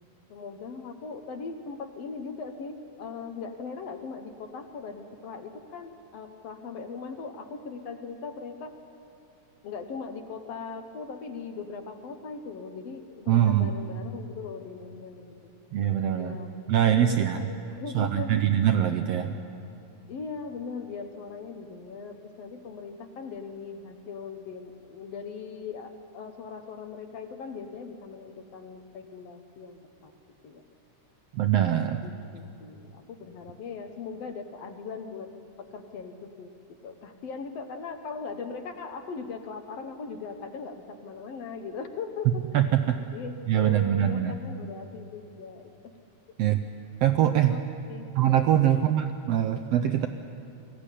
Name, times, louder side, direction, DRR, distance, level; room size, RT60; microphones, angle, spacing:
voice 1, 0.3-8.7 9.6-15.5 16.1-16.5 17.0-18.4 20.1-30.1 30.4-30.6 32.0-35.3 35.6-36.5 36.8-42.4 43.1-45.9 47.5-48.1 48.7-48.8, left 5 dB, 65° left, 6 dB, 1.9 m, -39 dB
voice 2, 13.3-13.7 15.7-16.3 16.7-17.5 17.9-19.4 31.3-32.0 42.5-43.0 43.5-44.4 46.4-46.6 47.0-47.5 48.2-50.1, right 11 dB, 75° right, 7 dB, 1.5 m, -23 dB
21.0 x 15.5 x 9.9 m, 2.7 s
omnidirectional pair, 3.5 m